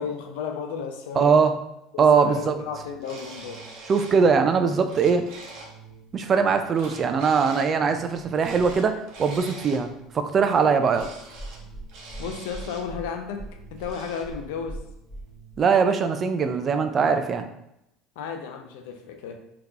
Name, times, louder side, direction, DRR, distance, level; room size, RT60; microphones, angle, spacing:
voice 1, 0.0-1.5 1.9-3.7 12.2-14.8 18.2-19.4, left 6 dB, 85° left, 5 dB, 0.5 m, -33 dB
voice 2, 1.2-1.5 2.0-2.5 3.9-5.3 6.1-9.9 10.1-11.1 15.6-17.4, right 5 dB, 35° right, 7 dB, 0.3 m, -21 dB
sound 1, 2.4-15.6, right 2 dB, 20° left, 1.2 m, -45 dB
sound 2, 3.0-4.2 4.6-5.7 6.7-7.7 8.3-9.8 10.9-11.6 11.9-12.8 13.8-14.2, right 2 dB, 65° right, 0.8 m, -43 dB
3.5 x 2.9 x 2.4 m, 0.84 s
supercardioid pair, 110°, 0 cm